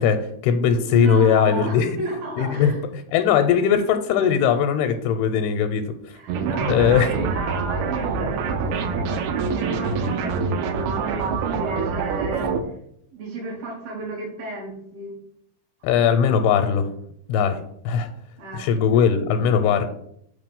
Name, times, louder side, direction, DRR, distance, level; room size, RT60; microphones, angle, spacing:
voice 1, 0.0-2.0 2.4-6.2 6.7-7.1 15.8-16.9 17.3-18.1 18.5-19.9, left 7 dB, 85° left, 7 dB, 2.5 m, -20 dB
voice 2, 0.9-2.8 6.1-12.6 13.1-15.1 18.4-18.7, right 2 dB, 70° right, -1 dB, 3.1 m, -32 dB
sound 1, 6.3-12.6, right 5 dB, 85° right, 2.6 m, -25 dB
8.3 x 3.0 x 5.3 m, 0.72 s
omnidirectional pair, 4.5 m